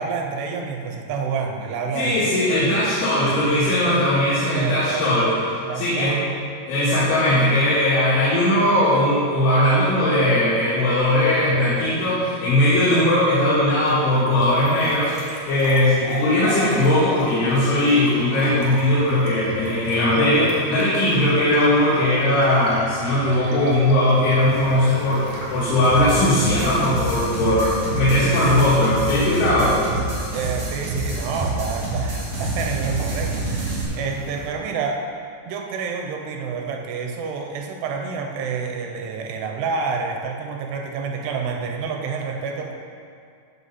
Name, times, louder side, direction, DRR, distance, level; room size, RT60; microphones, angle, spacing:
voice 1, 0.0-2.2 4.5-5.1 5.7-6.2 30.3-35.0 35.5-42.7, right 5 dB, 75° right, 2 dB, 2.5 m, -28 dB
voice 2, 2.0-6.2 6.7-15.1 15.5-29.8, left 1 dB, 80° left, -11 dB, 4.4 m, -19 dB
sound 1, 13.5-28.5, right 1 dB, 60° right, 1.7 m, -39 dB
sound 2, 24.4-34.5, equal, 60° left, 0.9 m, -37 dB
sound 3, 25.8-33.8, right 2 dB, 35° right, 1.9 m, -28 dB
14.5 x 5.6 x 4.2 m, 2.3 s
omnidirectional pair, 5.6 m